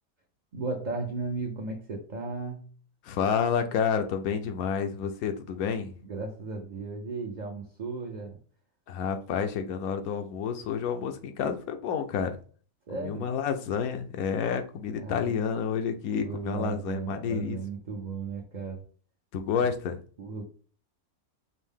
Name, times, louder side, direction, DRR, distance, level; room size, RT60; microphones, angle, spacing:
voice 1, 0.5-2.7 6.0-8.4 12.9-13.3 14.9-15.3 16.1-18.8 20.2-20.4, right 4 dB, 50° right, 0 dB, 0.5 m, -35 dB
voice 2, 3.0-5.9 8.9-12.4 12.9-17.6 19.3-20.0, left 7 dB, 80° left, 6 dB, 1.0 m, -29 dB
5.3 x 2.1 x 3.5 m, 0.42 s
omnidirectional pair, 1.5 m